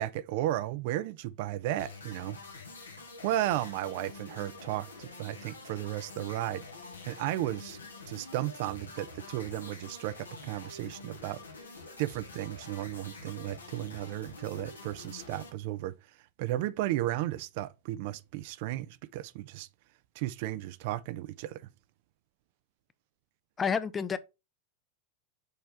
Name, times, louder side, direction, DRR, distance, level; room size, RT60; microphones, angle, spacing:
voice 1, 0.0-2.4 3.2-6.6 7.1-7.8 8.1-11.4 12.0-15.9 16.4-19.7 20.2-21.6, right 14 dB, 55° right, 0.4 m, -34 dB
sound 1, 1.8-15.5, left 3 dB, 80° left, 1.2 m, -47 dB
voice 2, 23.6-24.2, left 6 dB, 20° left, 0.5 m, -29 dB
6.6 x 4.4 x 3.4 m
figure-of-eight pair, 90°, 0 cm